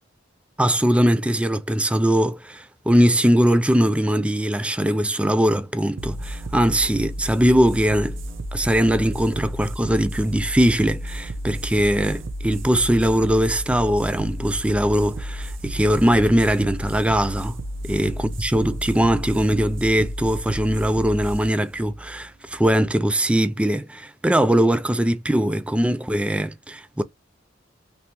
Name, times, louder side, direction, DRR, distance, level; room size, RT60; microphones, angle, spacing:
voice 1, 0.6-8.2 8.5-17.6 17.8-27.0, equal, 5° right, 0.4 m, -21 dB
sound 1, 6.0-23.0, equal, 70° right, 0.7 m, -32 dB
3.3 x 2.9 x 2.8 m
head